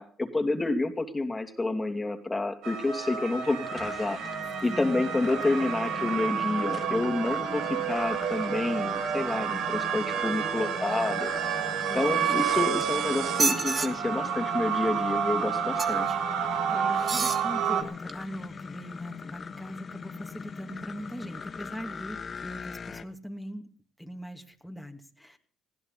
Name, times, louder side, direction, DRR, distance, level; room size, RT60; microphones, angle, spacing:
voice 1, 0.0-4.2 4.6-11.3 11.9-16.2, left 2 dB, 20° left, 6 dB, 2.7 m, -29 dB
sound 1, 2.6-17.8, right 8 dB, 80° right, 2.1 m, -30 dB
sound 2, 3.4-23.0, left 5 dB, 40° left, 1.5 m, -41 dB
voice 2, 4.6-5.5 6.0-6.3 11.9-12.8 16.7-23.7 24.0-25.4, equal, ahead, 3 dB, 2.6 m, -41 dB
sound 3, 12.1-12.8 13.3-13.9 15.8-16.1 17.0-17.4 18.1-18.2, right 4 dB, 35° right, 1.6 m, -29 dB
20.0 x 16.0 x 4.1 m, 0.43 s
supercardioid pair, 70°, 0 cm